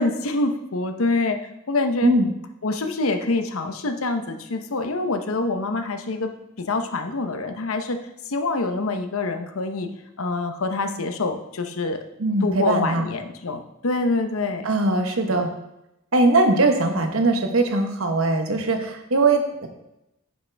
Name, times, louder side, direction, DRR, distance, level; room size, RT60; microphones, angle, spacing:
voice 1, 0.0-1.4 1.7-2.1 2.6-6.3 6.6-8.0 8.3-9.9 10.2-12.0 12.4-14.7 15.3-15.4, left 3 dB, 80° left, 7 dB, 0.8 m, -25 dB
voice 2, 12.2-13.1 14.6-15.5 16.1-19.7, right 2 dB, 75° right, 5 dB, 1.1 m, -20 dB
9.7 x 6.6 x 3.4 m, 0.89 s
head